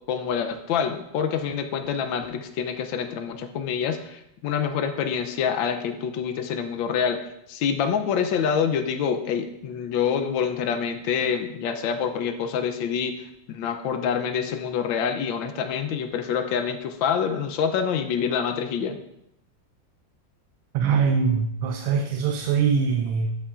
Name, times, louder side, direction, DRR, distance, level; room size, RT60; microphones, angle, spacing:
voice 1, 0.1-7.2 7.5-19.0, left 7 dB, 80° left, 7 dB, 1.4 m, -26 dB
voice 2, 20.7-23.4, right 6 dB, 85° right, 3 dB, 1.4 m, -23 dB
12.0 x 5.6 x 2.4 m, 0.79 s
omnidirectional pair, 2.1 m